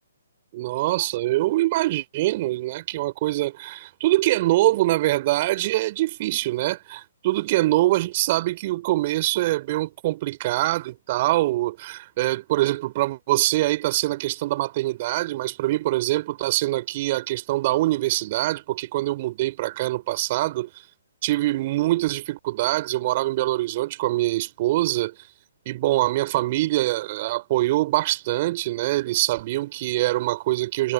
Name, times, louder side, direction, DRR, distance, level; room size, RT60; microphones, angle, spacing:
voice 1, 0.5-20.7 21.2-25.1 25.7-30.9, right 17 dB, 40° right, 6.1 m, -24 dB
figure-of-eight pair, 135°, 0 cm